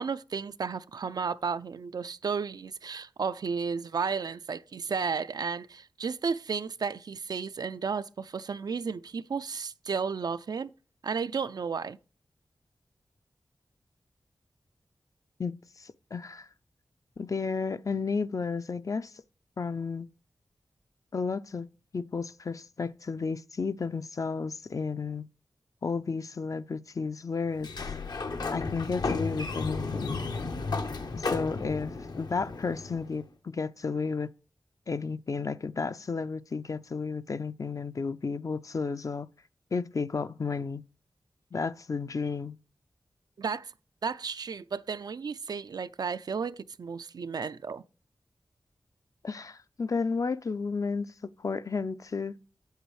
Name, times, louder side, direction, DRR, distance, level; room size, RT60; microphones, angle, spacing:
voice 1, 0.0-10.7 11.0-12.0 43.4-43.7 44.0-47.8, right 5 dB, 65° right, 0.4 m, -33 dB
voice 2, 15.4-16.5 17.2-19.1 19.6-20.1 21.1-21.7 21.9-25.3 25.8-27.7 28.5-30.2 31.1-34.3 34.9-39.3 39.7-40.8 41.5-42.6 49.2-51.1 51.4-52.3, left 4 dB, 50° left, 0.4 m, -32 dB
Sliding door, 27.6-33.2, left 3 dB, 70° left, 0.8 m, -33 dB
8.1 x 8.1 x 3.1 m
cardioid pair, 45°, 7 cm